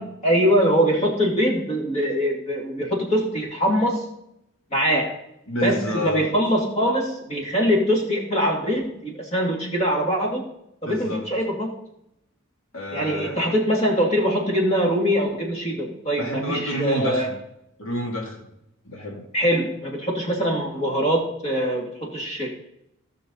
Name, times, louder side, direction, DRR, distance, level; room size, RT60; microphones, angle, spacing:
voice 1, 0.0-4.1 4.7-5.1 5.6-10.5 10.8-11.7 12.9-17.3 19.3-22.5, equal, 30° left, 0 dB, 2.7 m, -23 dB
voice 2, 5.5-6.3 10.8-11.3 12.7-13.4 16.2-17.4 17.8-18.4 18.8-19.3, equal, 75° left, 0 dB, 2.7 m, -29 dB
17.5 x 6.1 x 4.1 m, 0.79 s
head